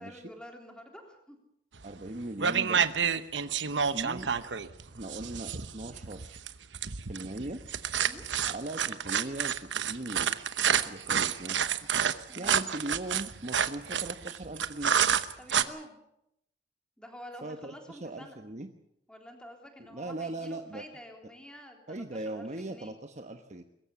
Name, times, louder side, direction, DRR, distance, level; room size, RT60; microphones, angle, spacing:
voice 1, 0.0-1.4 7.9-8.3 12.3-12.7 15.4-16.0 17.0-18.4 19.1-23.0, equal, 5° left, 3 dB, 3.6 m, -49 dB
voice 2, 1.8-2.9 3.8-4.4 4.9-6.4 7.1-7.6 8.4-11.7 12.3-14.9 17.4-18.7 19.8-20.9 21.9-23.6, right 1 dB, 40° right, 6 dB, 1.1 m, -39 dB
sound 1, 1.8-2.1 2.4-15.6, right 7 dB, 85° right, 1.0 m, -29 dB
22.5 x 14.5 x 8.4 m, 0.80 s
head